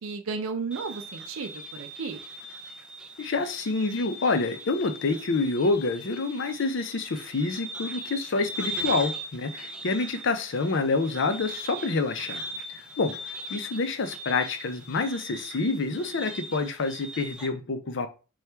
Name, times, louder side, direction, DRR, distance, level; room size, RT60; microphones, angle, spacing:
voice 1, 0.0-2.2, right 4 dB, 85° right, 0.4 m, -34 dB
sound 1, 0.7-17.5, right 1 dB, 5° right, 0.4 m, -40 dB
voice 2, 3.2-12.4 12.7-13.2 13.5-18.1, left 3 dB, 65° left, 0.5 m, -27 dB
4.3 x 2.3 x 3.3 m
head